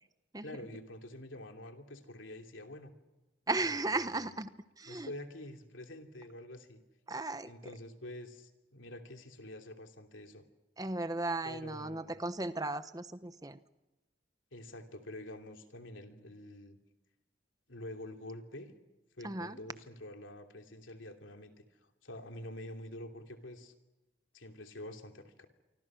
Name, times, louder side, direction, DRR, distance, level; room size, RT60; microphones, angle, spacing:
voice 1, 0.4-2.9 3.6-4.4 4.9-6.8 7.5-10.4 11.4-12.2 14.5-16.8 17.7-18.7 19.2-23.7 24.3-25.5, left 1 dB, 90° left, 5 dB, 3.0 m, -47 dB
voice 2, 3.5-4.5 4.8-5.1 7.1-7.5 10.8-13.6 19.2-19.6, right 2 dB, 20° right, 12 dB, 0.9 m, -35 dB
27.5 x 24.5 x 6.3 m, 1.1 s
head